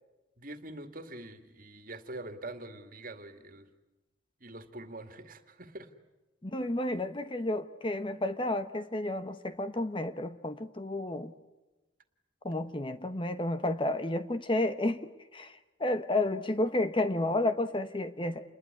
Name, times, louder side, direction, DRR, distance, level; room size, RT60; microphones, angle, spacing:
voice 1, 0.4-3.7 4.4-5.9, right 2 dB, 45° right, 8 dB, 2.3 m, -44 dB
voice 2, 6.4-11.3 12.4-18.4, left 1 dB, 25° left, 11 dB, 1.0 m, -31 dB
28.5 x 21.0 x 9.8 m, 1.1 s
head